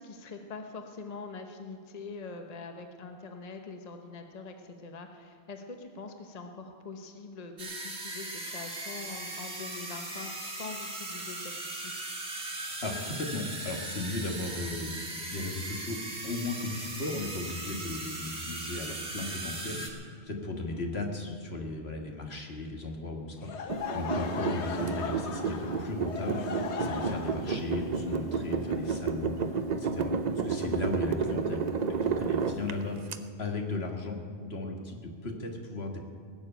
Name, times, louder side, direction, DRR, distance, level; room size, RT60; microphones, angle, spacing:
voice 1, 0.0-11.9 14.2-14.4 20.6-20.8 24.4-24.5, left 4 dB, 40° left, 4 dB, 1.0 m, -44 dB
sound 1, 7.6-19.9, right 2 dB, 70° right, 2.4 m, -38 dB
voice 2, 12.6-16.0 16.2-26.5 26.8-29.3 29.7-31.7 32.0-36.0, left 2 dB, 70° left, 2 dB, 1.9 m, -36 dB
Laughter / Crowd, 23.4-29.3, left 5 dB, 85° left, 1.2 m, -38 dB
sound 2, 23.7-33.2, right 5 dB, 45° right, 0.7 m, -31 dB
19.0 x 7.2 x 8.9 m, 2.1 s
omnidirectional pair, 1.1 m